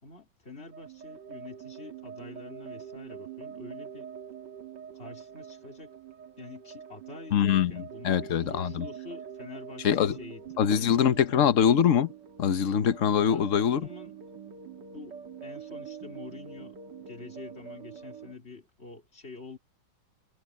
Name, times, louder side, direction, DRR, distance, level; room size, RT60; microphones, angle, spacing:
voice 1, 0.0-4.1 4.9-5.9 6.4-10.5 10.8-11.4 13.3-14.2 14.9-19.6, left 4 dB, 30° left, 4.2 m, -46 dB
sound 1, 0.7-18.3, right 8 dB, 60° right, 2.3 m, -45 dB
voice 2, 7.3-8.9 9.8-10.2 10.6-12.1 12.4-13.8, left 8 dB, 50° left, 1.1 m, -23 dB
omnidirectional pair, 2.1 m